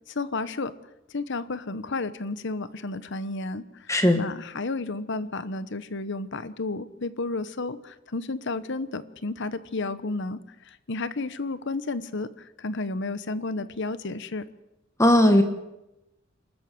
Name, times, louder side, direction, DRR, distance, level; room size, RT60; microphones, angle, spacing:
voice 1, 0.1-0.7 1.1-14.4, left 3 dB, 65° left, 14 dB, 1.0 m, -32 dB
voice 2, 3.9-4.2 15.0-15.4, left 1 dB, 15° left, 7 dB, 1.4 m, -17 dB
28.5 x 13.0 x 7.7 m, 0.90 s
head